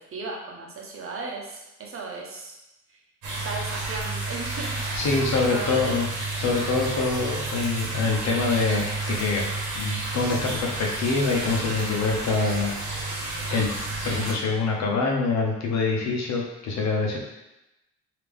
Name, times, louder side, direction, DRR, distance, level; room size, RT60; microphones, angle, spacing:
voice 1, 0.1-2.6 3.3-5.1 5.5-5.8, right 3 dB, 45° right, -1 dB, 0.9 m, -36 dB
sound 1, 3.2-14.3, right 2 dB, 80° right, 1.1 m, -31 dB
voice 2, 4.9-6.1 6.3-9.4 9.7-13.1 13.5-13.7 14.0-17.2, left 4 dB, 65° left, 0 dB, 0.9 m, -25 dB
3.3 x 2.9 x 3.5 m, 0.93 s
cardioid pair, 90°, 30 cm